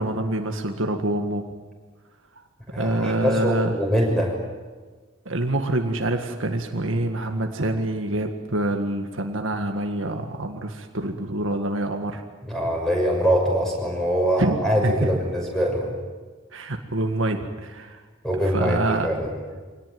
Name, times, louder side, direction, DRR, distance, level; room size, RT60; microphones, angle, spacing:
voice 1, 0.0-1.4 2.7-3.8 5.3-12.2 14.4-15.1 16.5-18.0 18.5-19.1, right 1 dB, 65° right, 4 dB, 1.9 m, -26 dB
voice 2, 2.7-4.3 12.4-15.9 18.2-19.3, equal, ahead, -1 dB, 6.6 m, -23 dB
25.5 x 18.5 x 9.6 m, 1.4 s
head